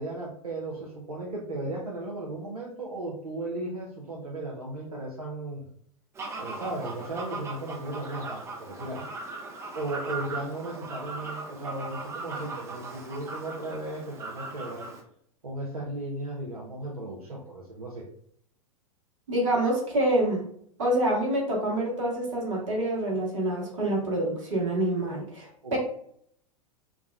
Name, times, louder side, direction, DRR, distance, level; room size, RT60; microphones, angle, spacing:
voice 1, 0.0-5.7 6.4-9.1 9.7-14.9 15.4-18.0 25.6-25.8, right 2 dB, 85° right, -4 dB, 0.6 m, -36 dB
Fowl, 6.2-15.0, right 3 dB, 15° right, 0.4 m, -38 dB
voice 2, 19.3-20.4 20.8-25.8, right 1 dB, 60° right, -2 dB, 1.2 m, -26 dB
3.5 x 2.0 x 2.3 m, 0.64 s
figure-of-eight pair, 90°, 18 cm